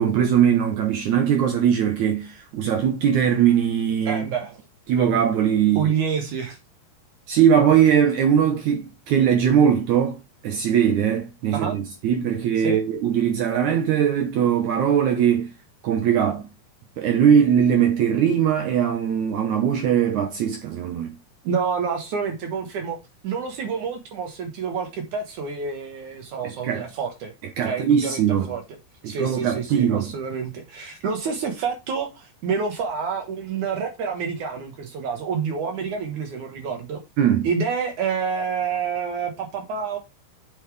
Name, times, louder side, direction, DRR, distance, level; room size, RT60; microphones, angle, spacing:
voice 1, 0.0-4.3 4.9-5.9 7.3-10.2 10.4-15.5 15.8-16.5 17.0-21.2 26.4-26.8 27.6-28.5 29.0-30.1 37.2-37.5, right 8 dB, 80° right, 1.6 m, -20 dB
voice 2, 4.1-4.6 5.8-6.6 11.5-11.8 12.6-12.8 21.4-23.0 23.2-27.3 27.6-28.6 29.1-37.0 37.4-40.0, right 6 dB, 60° right, 2.3 m, -28 dB
8.1 x 5.6 x 3.3 m
omnidirectional pair, 4.8 m